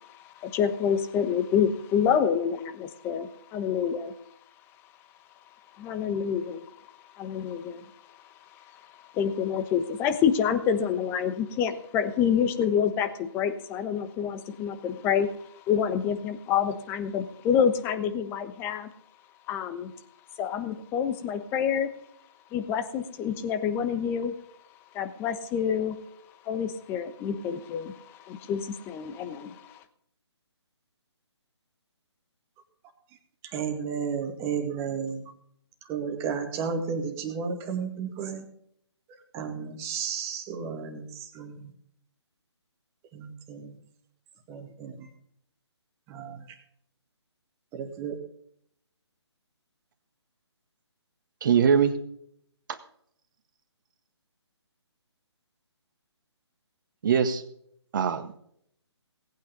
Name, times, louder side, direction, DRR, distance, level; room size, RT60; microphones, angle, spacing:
voice 1, 0.0-4.1 5.8-6.7 7.1-7.9 8.7-15.3 15.7-18.9 19.5-19.9 20.4-21.9 22.5-24.3 24.9-26.0 26.4-29.8, left 8 dB, 15° left, 9 dB, 1.0 m, -27 dB
voice 2, 33.5-35.2 35.9-38.4 39.3-41.1 41.4-41.6 43.1-43.7 44.5-44.9 46.1-46.4 47.7-48.2, right 6 dB, 20° right, 4 dB, 1.9 m, -32 dB
voice 3, 51.4-51.9 52.7-52.8 57.0-57.4 57.9-58.4, right 7 dB, 45° right, 8 dB, 1.6 m, -22 dB
18.5 x 8.9 x 5.3 m, 0.69 s
figure-of-eight pair, 145°, 15 cm